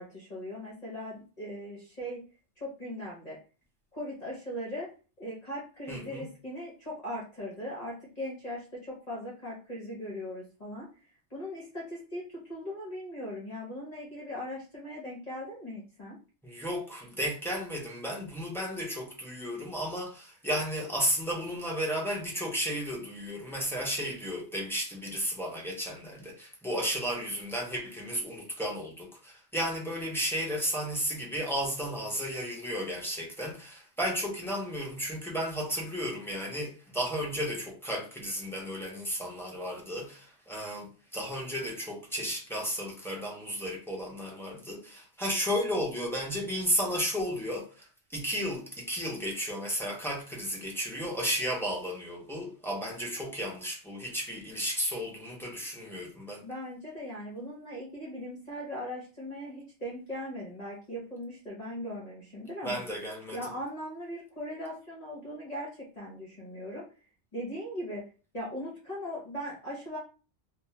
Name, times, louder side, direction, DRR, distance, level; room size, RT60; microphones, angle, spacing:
voice 1, 0.0-2.2 2.6-3.4 3.9-4.9 5.2-10.9 11.3-16.2 56.4-62.8 63.3-66.8 67.3-68.0 68.3-70.0, equal, 40° left, 0.8 m, -39 dB
voice 2, 5.9-6.2 16.4-56.4 62.6-63.5, equal, 5° left, 0.4 m, -33 dB
2.3 x 2.2 x 2.8 m
omnidirectional pair, 1.2 m